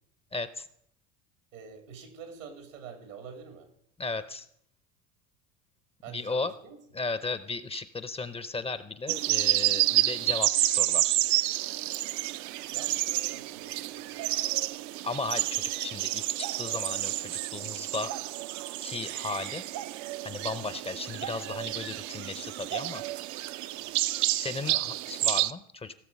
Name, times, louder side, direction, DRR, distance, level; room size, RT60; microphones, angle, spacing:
voice 1, 0.3-0.7 4.0-4.5 6.1-6.5 6.9-11.2 15.0-18.1 18.8-19.6 20.2-23.0 24.4-25.9, left 3 dB, 15° left, 13 dB, 0.6 m, -35 dB
voice 2, 1.5-3.7 6.0-6.8 12.4-14.9 23.8-24.0 24.7-25.0, right 6 dB, 90° right, 5 dB, 2.5 m, -47 dB
sound 1, 9.1-25.5, right 16 dB, 50° right, 0.5 m, -30 dB
16.0 x 6.8 x 5.2 m, 0.68 s
hypercardioid pair, 80°, 38 cm